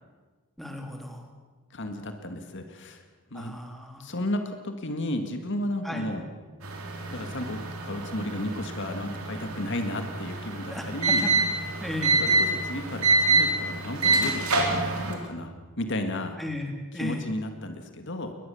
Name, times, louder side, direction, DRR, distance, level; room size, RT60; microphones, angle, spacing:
voice 1, 0.6-1.3 3.3-4.0 5.8-6.1 10.7-11.3 11.8-12.2 16.4-17.2, left 1 dB, ahead, 2 dB, 3.1 m, -35 dB
voice 2, 1.7-3.0 3.3-3.5 4.0-6.3 7.1-11.3 12.2-16.4 16.9-18.4, left 1 dB, 55° left, 6 dB, 1.9 m, -33 dB
sound 1, 6.6-15.1, right 3 dB, 85° right, 4.0 m, -26 dB
22.0 x 20.0 x 7.0 m, 1.4 s
head